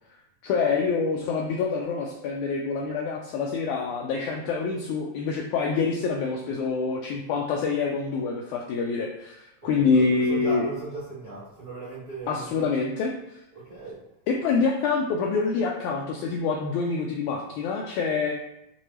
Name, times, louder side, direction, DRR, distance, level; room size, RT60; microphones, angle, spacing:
voice 1, 0.4-10.7 12.3-13.4 14.3-18.3, left 4 dB, 85° left, 0 dB, 1.7 m, -26 dB
voice 2, 9.6-12.7 13.5-14.0, right 2 dB, 40° right, -11 dB, 0.5 m, -38 dB
6.7 x 2.6 x 2.9 m, 0.89 s
omnidirectional pair, 3.9 m